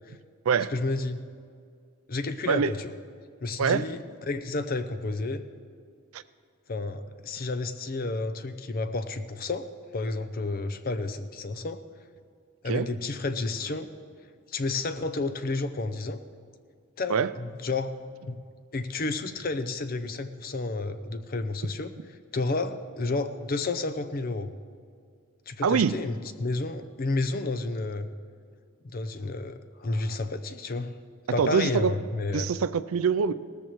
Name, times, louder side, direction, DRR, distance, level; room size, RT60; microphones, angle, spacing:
voice 1, 0.7-1.2 2.1-2.9 3.4-4.0 4.3-5.5 6.7-11.8 12.6-13.9 14.5-16.2 17.0-17.9 18.3-18.4 18.7-21.9 22.3-24.5 25.5-28.1 28.8-30.9 31.3-32.5, left 3 dB, 40° left, 10 dB, 0.6 m, -31 dB
voice 2, 25.6-25.9 31.4-31.9 32.3-33.3, right 6 dB, 75° right, 15 dB, 0.4 m, -24 dB
18.0 x 14.0 x 3.1 m, 2.2 s
head